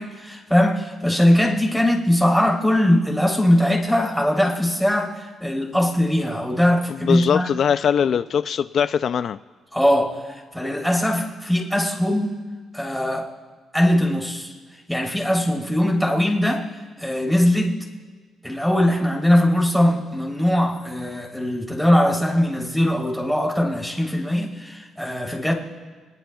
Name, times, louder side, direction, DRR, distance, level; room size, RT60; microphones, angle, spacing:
voice 1, 0.0-7.5 8.0-8.1 9.7-12.4 12.7-13.3 13.7-14.5 14.9-16.7 17.0-17.7 18.4-25.5, left 1 dB, ahead, -1 dB, 3.3 m, -21 dB
voice 2, 6.9-9.4, left 8 dB, 60° left, 12 dB, 0.4 m, -21 dB
27.5 x 19.5 x 2.3 m, 1.5 s
cardioid pair, 90°, 0 cm